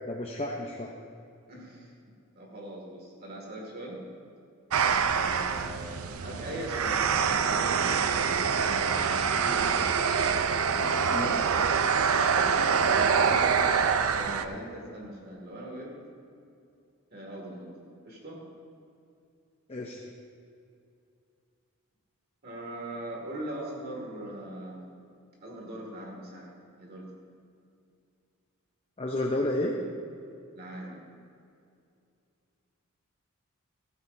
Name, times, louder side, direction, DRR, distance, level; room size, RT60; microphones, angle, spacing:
voice 1, 0.1-0.9 11.1-11.4 19.7-20.0 29.0-29.7, left 1 dB, 30° left, 0 dB, 0.8 m, -31 dB
voice 2, 1.5-1.9 2.4-4.0 5.1-9.9 10.6-11.9 12.3-12.7 13.1-13.7 14.1-15.9 17.1-17.7 18.0-18.4 22.4-24.8 25.4-26.5 26.8-27.1 30.5-31.0, right 1 dB, 45° right, -2 dB, 2.3 m, -41 dB
sound 1, 4.7-14.4, right 6 dB, 75° right, 0.5 m, -25 dB
14.5 x 14.5 x 2.7 m, 2.5 s
head